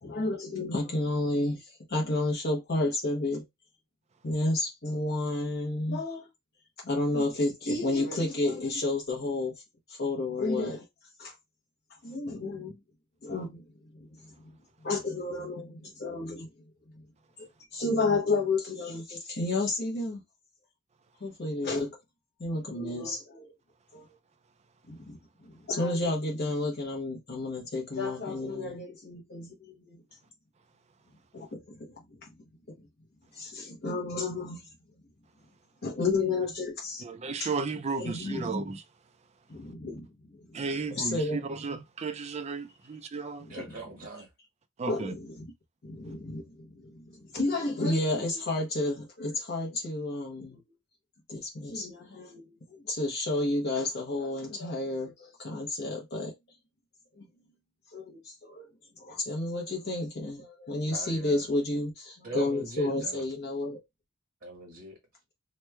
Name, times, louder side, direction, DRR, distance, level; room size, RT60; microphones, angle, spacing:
voice 1, 0.0-1.6 1.9-3.4 4.2-6.3 6.8-9.5 9.9-10.8 11.2-11.3 12.0-12.8 13.2-13.6 14.8-16.5 17.7-20.2 21.2-22.0 22.4-23.5 23.9-24.0 24.9-25.2 25.4-30.0 31.3-31.9 33.4-34.6 35.8-37.0 37.4-37.5 38.0-38.4 39.5-40.1 40.9-41.5 43.4-43.6 44.9-45.5 45.8-50.6 51.3-52.4 52.8-56.3 57.2-57.3 57.9-58.7 59.0-63.8, left 2 dB, 50° left, 0.8 m, -31 dB
voice 2, 37.0-38.8 40.5-43.5 44.8-45.1, right 4 dB, 30° right, 0.4 m, -34 dB
voice 3, 43.5-44.3 60.9-61.5 62.2-63.2 64.4-65.0, right 2 dB, 55° right, 1.0 m, -41 dB
3.0 x 2.2 x 3.3 m
head